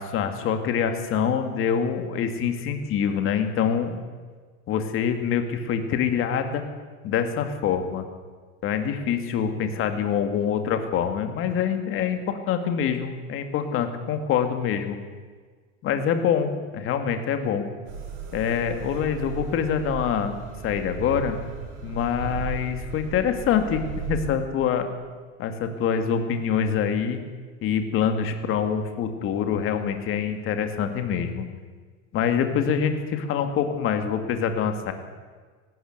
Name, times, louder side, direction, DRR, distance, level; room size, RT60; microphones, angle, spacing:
voice 1, 0.0-4.0 4.7-6.6 7.0-8.0 8.6-15.0 15.8-17.6 18.3-21.4 21.8-24.9 25.4-27.2 27.6-31.5 32.1-34.9, left 7 dB, 35° left, 7 dB, 2.3 m, -25 dB
sound 1, 17.9-24.3, right 7 dB, 65° right, 7.1 m, -36 dB
19.0 x 15.0 x 9.5 m, 1.5 s
supercardioid pair, 155°, 37 cm